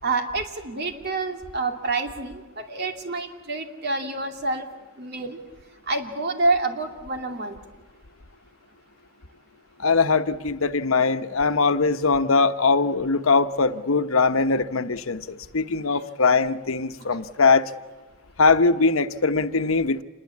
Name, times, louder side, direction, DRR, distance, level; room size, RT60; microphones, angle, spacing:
voice 1, 0.0-4.7 5.0-5.4 5.9-7.6, right 3 dB, 50° right, 5 dB, 2.7 m, -27 dB
voice 2, 9.8-15.2 15.5-17.7 18.4-20.0, left 4 dB, 90° left, 10 dB, 1.1 m, -21 dB
27.5 x 21.5 x 8.5 m, 1.2 s
head